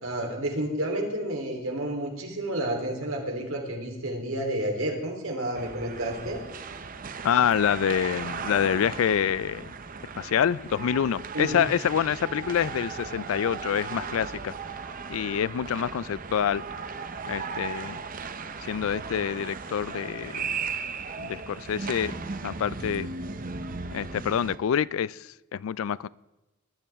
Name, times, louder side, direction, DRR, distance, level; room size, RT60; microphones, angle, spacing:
voice 1, 0.0-6.4 11.3-11.6, right 1 dB, 75° right, 3.4 m, -30 dB
sound 1, 5.5-24.6, right 5 dB, 40° right, 0.7 m, -37 dB
voice 2, 7.2-9.7 10.2-14.6 15.1-16.6 17.2-18.0 18.6-20.6 21.2-22.2 22.4-23.1 23.9-26.1, left 8 dB, 75° left, 0.3 m, -27 dB
19.0 x 12.0 x 3.5 m
head